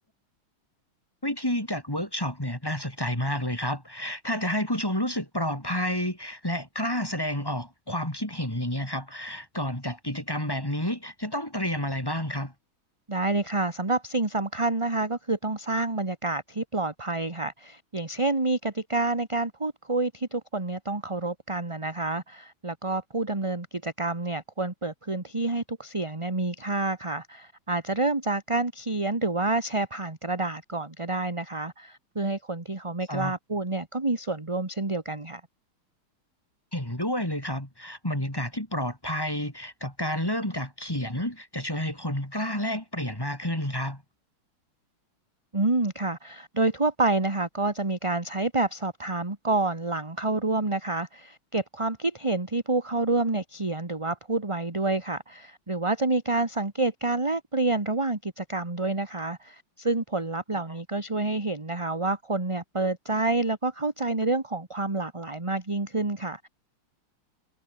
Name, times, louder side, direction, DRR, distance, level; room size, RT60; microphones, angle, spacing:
voice 1, 1.2-12.5 33.1-33.3 36.7-44.0, left 1 dB, 10° left, 4.1 m, -30 dB
voice 2, 13.1-35.4 45.5-66.5, right 2 dB, 15° right, 1.9 m, -28 dB
omnidirectional pair, 2.3 m